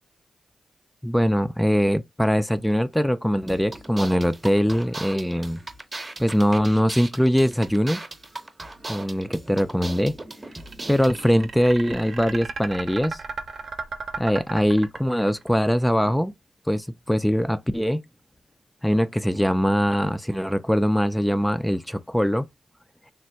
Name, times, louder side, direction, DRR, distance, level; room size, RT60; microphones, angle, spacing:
voice 1, 1.0-5.6 6.2-8.0 8.9-10.2 10.9-13.2 14.2-16.3 16.7-18.0 18.8-22.5, equal, 5° left, 0.3 m, -22 dB
sound 1, 3.5-11.3, right 2 dB, 30° right, 0.8 m, -38 dB
sound 2, 10.5-15.6, right 4 dB, 65° right, 0.6 m, -34 dB
3.3 x 2.1 x 2.7 m
supercardioid pair, 45°, 0 cm